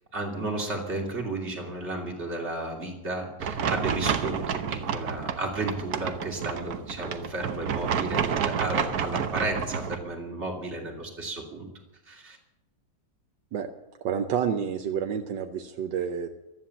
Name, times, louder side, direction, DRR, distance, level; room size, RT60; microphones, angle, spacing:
voice 1, 0.1-11.7 12.0-12.4, right 2 dB, 35° right, -1 dB, 3.1 m, -33 dB
sound 1, 3.4-10.0, right 7 dB, 60° right, 1.4 m, -30 dB
voice 2, 14.0-16.3, right 8 dB, 80° right, 6 dB, 1.5 m, -29 dB
15.0 x 13.0 x 7.1 m, 0.96 s
omnidirectional pair, 2.0 m